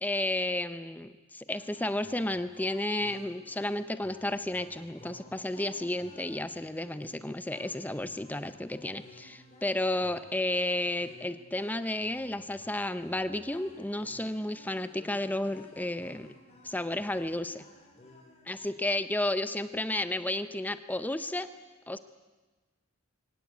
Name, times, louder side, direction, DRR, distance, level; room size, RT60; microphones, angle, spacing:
voice 1, 0.0-16.3 16.6-17.6 18.5-21.5 21.9-22.0, left 1 dB, 10° left, 11 dB, 0.6 m, -32 dB
sound 1, 1.5-18.7, left 1 dB, 30° left, 3.9 m, -56 dB
23.5 x 17.5 x 8.3 m, 1.2 s
head